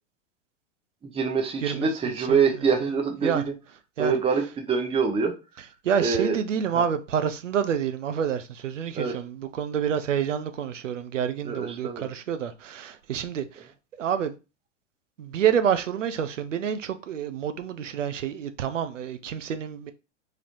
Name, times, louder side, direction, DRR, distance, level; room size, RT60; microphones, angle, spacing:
voice 1, 1.0-3.5 4.0-5.4 6.0-6.4 6.7-6.8 8.9-9.1 11.4-12.1, right 5 dB, 15° right, 0.7 m, -25 dB
voice 2, 5.8-13.7 14.0-14.3 15.2-19.9, right 8 dB, 90° right, 0.5 m, -28 dB
3.9 x 3.2 x 2.5 m
hypercardioid pair, 95°, 36 cm